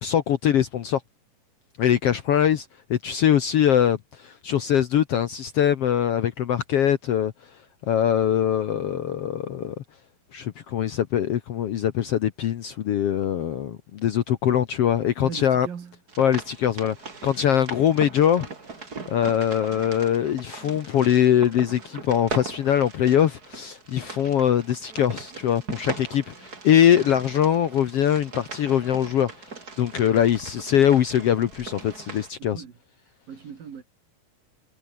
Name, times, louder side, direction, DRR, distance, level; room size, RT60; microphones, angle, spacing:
voice 1, 0.0-1.0 1.8-7.3 7.8-9.7 10.3-15.7 16.2-16.9 17.2-18.5 19.1-32.6, left 10 dB, 65° left, 1.6 m, -22 dB
voice 2, 15.2-16.0 32.4-32.8 33.3-33.8, right 7 dB, 85° right, 5.1 m, -39 dB
sound 1, 16.1-32.3, right 4 dB, 30° right, 3.2 m, -39 dB
omnidirectional pair, 3.9 m